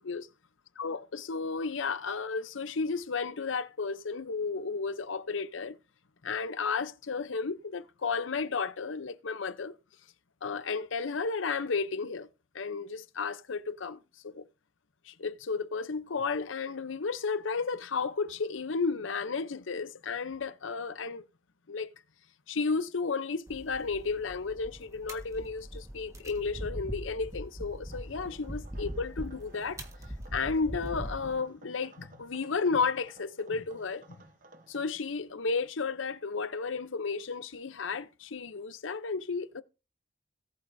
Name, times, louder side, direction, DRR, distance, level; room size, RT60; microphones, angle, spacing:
voice 1, 0.8-5.8 6.2-9.7 10.4-12.3 12.5-14.5 15.1-21.3 21.7-21.9 22.5-29.8 30.3-34.0 34.7-39.6, left 4 dB, 85° left, 0.7 m, -33 dB
sound 1, 23.5-31.4, equal, 15° right, 1.5 m, -41 dB
sound 2, 27.9-34.9, right 2 dB, 40° right, 1.0 m, -56 dB
18.0 x 8.2 x 2.7 m
head